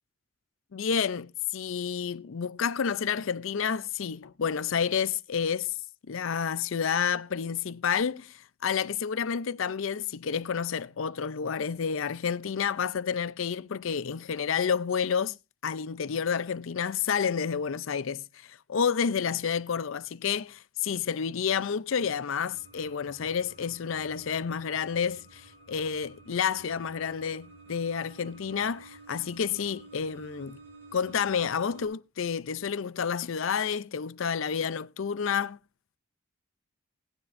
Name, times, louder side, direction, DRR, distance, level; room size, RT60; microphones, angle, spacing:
voice 1, 0.7-5.7 6.1-15.4 15.6-30.6 30.9-35.6, left 7 dB, 65° left, 0.5 m, -30 dB
sound 1, 22.5-31.9, right 3 dB, 65° right, 7.0 m, -52 dB
19.0 x 9.7 x 2.5 m
head